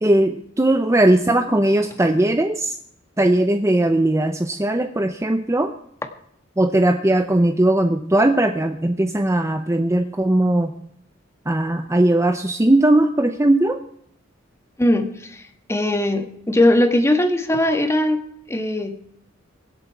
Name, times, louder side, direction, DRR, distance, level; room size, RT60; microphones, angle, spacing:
voice 1, 0.0-2.8 3.2-5.7 6.6-10.7 11.5-13.8, right 1 dB, 15° right, 7 dB, 0.7 m, -18 dB
voice 2, 14.8-15.4 15.7-18.2 18.5-19.0, left 1 dB, 15° left, 6 dB, 1.5 m, -19 dB
24.0 x 8.0 x 4.6 m, 0.70 s
head